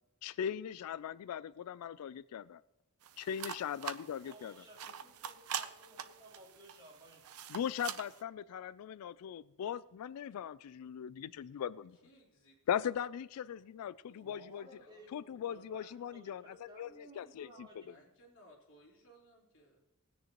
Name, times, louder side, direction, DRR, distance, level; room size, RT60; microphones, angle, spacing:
voice 1, 0.2-2.6 3.2-4.5 7.5-12.0 12.7-14.7 15.1-16.4 16.8-17.5, left 9 dB, 85° left, 17 dB, 0.3 m, -39 dB
sound 1, 3.0-8.2, right 8 dB, 85° right, 0.8 m, -44 dB
voice 2, 4.2-7.5 7.8-8.2 14.2-18.1, right 1 dB, 20° right, -3 dB, 3.6 m, -58 dB
voice 3, 12.0-13.0 13.5-13.6 14.0-14.4 14.7-15.0 17.9-19.8, equal, 60° left, -2 dB, 3.6 m, -62 dB
19.5 x 9.9 x 3.0 m, 0.92 s
head